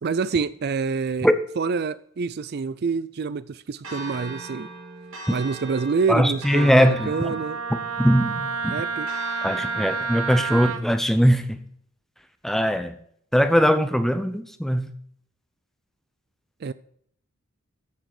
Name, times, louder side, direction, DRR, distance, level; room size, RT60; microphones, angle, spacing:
voice 1, 0.0-1.3 1.6-4.7 5.3-7.6 8.7-9.1 16.6-16.7, right 5 dB, 50° right, 0.4 m, -27 dB
Church bell, 3.8-10.3, right 2 dB, 65° right, 3.2 m, -40 dB
voice 2, 6.1-7.3 8.0-8.7 9.4-11.6 12.4-12.9 13.3-14.9, equal, ahead, 0.7 m, -20 dB
Wind instrument woodwind instrument, 6.5-10.8, right 5 dB, 85° right, 1.1 m, -30 dB
14.0 x 6.5 x 4.8 m
head